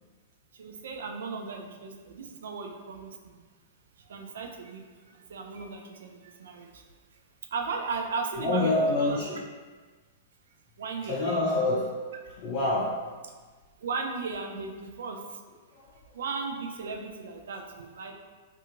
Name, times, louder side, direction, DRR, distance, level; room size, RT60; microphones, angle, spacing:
voice 1, 0.5-3.4 4.0-6.8 7.5-9.4 10.8-11.2 13.8-15.4 16.1-18.1, right 4 dB, 75° right, 3 dB, 0.4 m, -36 dB
voice 2, 8.4-9.4 11.0-12.1 12.4-13.1 15.7-16.0, left 2 dB, 40° left, -5 dB, 0.4 m, -27 dB
2.7 x 2.4 x 2.5 m, 1.4 s
hypercardioid pair, 110°, 0 cm